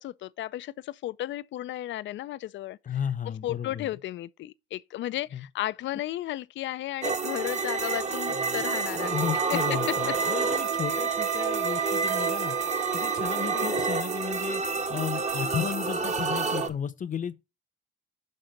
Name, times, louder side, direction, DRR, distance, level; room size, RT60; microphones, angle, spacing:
voice 1, 0.0-2.8 3.4-9.1 9.5-9.6 13.5-13.9, left 14 dB, 70° left, 0.4 m, -34 dB
voice 2, 2.8-3.9 5.3-5.5 8.3-8.6 8.9-12.6 12.9-14.6 14.9-17.3, left 8 dB, 40° left, 0.8 m, -34 dB
sound 1, 7.0-16.7, right 4 dB, 35° right, 1.1 m, -29 dB
Wind instrument woodwind instrument, 9.0-13.7, right 9 dB, 80° right, 1.8 m, -33 dB
6.6 x 3.7 x 5.6 m
cardioid pair, 90°, 20 cm